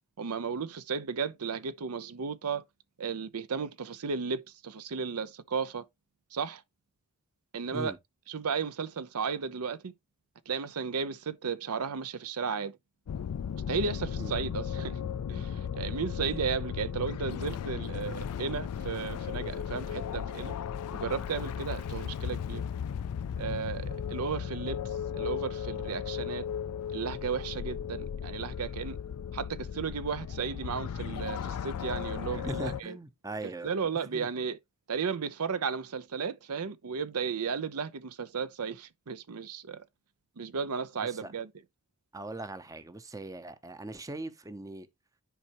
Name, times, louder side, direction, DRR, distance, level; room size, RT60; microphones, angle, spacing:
voice 1, 0.2-2.6 3.0-5.8 6.3-6.6 7.5-7.9 8.3-9.9 10.5-12.7 13.7-15.0 15.3-20.5 21.0-22.6 23.4-24.8 25.1-26.4 26.9-29.0 29.3-33.0 33.6-34.6 34.9-39.8 40.4-41.5, right 5 dB, 80° right, 0.6 m, -34 dB
sound 1, 13.1-32.8, left 8 dB, 85° left, 0.4 m, -36 dB
voice 2, 32.2-33.7 34.0-34.3 41.1-41.3 42.1-44.9, right 2 dB, 15° right, 0.6 m, -40 dB
10.0 x 4.5 x 2.9 m
head